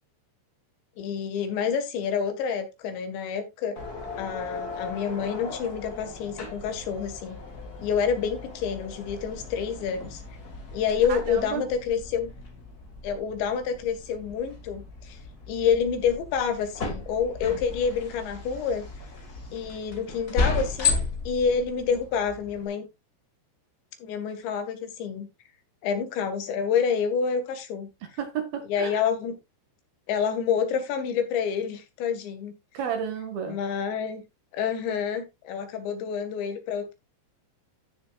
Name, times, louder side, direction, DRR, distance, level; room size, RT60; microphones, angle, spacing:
voice 1, 1.0-3.8 4.2-7.4 7.8-10.2 10.7-12.3 13.0-15.2 15.5-18.9 19.5-22.9 24.0-25.3 25.8-27.9 28.7-29.4 30.1-32.5 33.5-34.2 34.5-36.9, left 6 dB, 85° left, 4.0 m, -28 dB
sound 1, 3.8-22.7, left 4 dB, 45° left, 1.2 m, -35 dB
voice 2, 11.1-11.7 28.2-29.0 32.7-33.6, right 8 dB, 65° right, 3.5 m, -32 dB
15.0 x 6.8 x 2.4 m
omnidirectional pair, 5.0 m